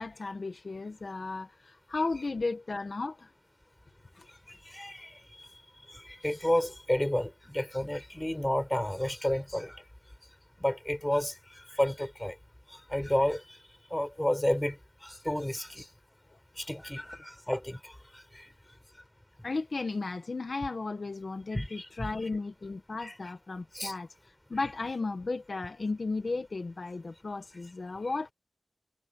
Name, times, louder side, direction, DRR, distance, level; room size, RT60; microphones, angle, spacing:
voice 1, 0.0-3.3 4.2-4.3 19.4-28.3, left 3 dB, 60° left, 1.8 m, -35 dB
voice 2, 4.7-5.1 5.9-9.8 10.6-11.3 11.7-12.3 12.7-13.6 13.9-15.9 16.6-18.0 21.5-22.1 23.0-23.1 23.7-23.9, left 1 dB, 10° left, 7.2 m, -31 dB
wide cardioid pair, 60°, 0 cm